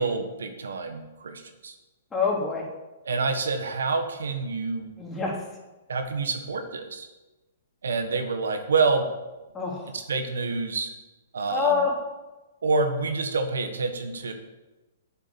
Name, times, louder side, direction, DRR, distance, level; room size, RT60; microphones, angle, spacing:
voice 1, 0.0-1.7 3.1-4.9 5.9-7.1 7.8-9.0 10.1-10.9 11.3-11.7 12.6-14.3, right 4 dB, 85° right, 6 dB, 1.5 m, -27 dB
voice 2, 2.1-2.7 5.0-5.6 9.5-10.0 11.5-12.0, left 5 dB, 10° left, -3 dB, 3.0 m, -26 dB
7.6 x 7.4 x 8.5 m, 1.1 s
hypercardioid pair, 135°, 0 cm